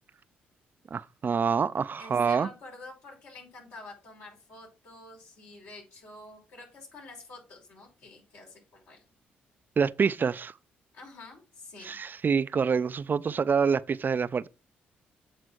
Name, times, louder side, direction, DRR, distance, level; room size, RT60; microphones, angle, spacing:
voice 1, 0.9-2.5 9.8-10.5 11.8-14.5, right 6 dB, 40° right, 0.4 m, -26 dB
voice 2, 2.0-9.0 10.9-12.0, left 2 dB, 70° left, 5.4 m, -48 dB
8.1 x 4.2 x 6.1 m
hypercardioid pair, 50°, 5 cm